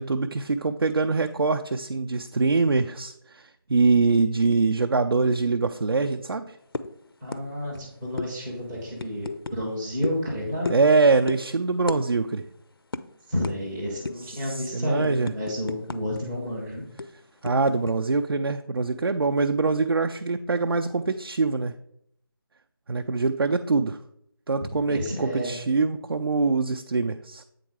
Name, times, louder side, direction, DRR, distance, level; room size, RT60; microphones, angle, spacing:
voice 1, 0.0-6.6 10.7-12.4 14.3-15.3 17.4-21.7 22.9-24.0 24.5-27.4, right 4 dB, 75° right, 5 dB, 0.5 m, -24 dB
sound 1, 6.7-7.0 7.3-7.5 7.7-7.9 8.2-8.3 9.0-9.6 10.0-10.2 10.6-10.9 11.3-11.4 11.9-12.0 12.3-12.5 12.9-13.0 13.4-13.6 14.0-14.3 14.7-16.2 16.5-16.6 17.0-17.9, left 3 dB, 70° left, 0.5 m, -32 dB
voice 2, 7.2-10.7 13.3-16.9 24.6-25.5, equal, 5° right, -6 dB, 0.4 m, -31 dB
8.4 x 3.7 x 4.6 m, 0.72 s
figure-of-eight pair, 160°, 13 cm